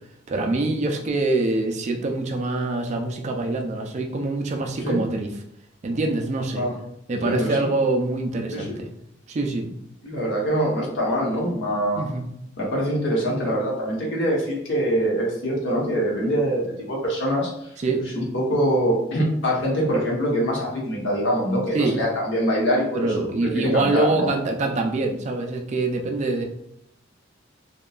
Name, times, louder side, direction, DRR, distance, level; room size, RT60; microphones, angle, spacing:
voice 1, 0.3-5.3 5.8-6.6 7.1-8.9 9.3-9.7 12.0-12.3 17.8-18.0 21.7-22.0 22.9-26.4, right 2 dB, 35° right, 2 dB, 0.3 m, -24 dB
voice 2, 7.1-7.7 8.5-8.8 10.0-12.1 12.6-17.7 18.1-23.2 23.5-24.3, equal, 70° left, -3 dB, 0.9 m, -24 dB
2.7 x 2.2 x 2.3 m, 0.76 s
head